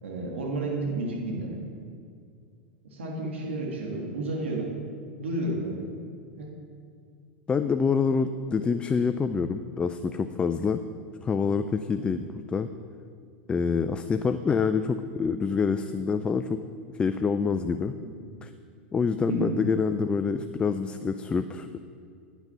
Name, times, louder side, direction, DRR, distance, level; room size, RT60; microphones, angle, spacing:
voice 1, 0.0-1.6 2.8-4.7 5.2-5.8 6.4-6.5 18.0-18.2 19.3-19.5, right 2 dB, 90° right, -1 dB, 1.6 m, -31 dB
voice 2, 7.5-10.8 11.2-12.2 12.5-12.7 13.5-16.6 16.9-17.9 18.4-18.5 18.9-21.8, left 5 dB, 15° left, 9 dB, 0.3 m, -26 dB
10.5 x 6.1 x 5.4 m, 2.2 s
hypercardioid pair, 115°, 6 cm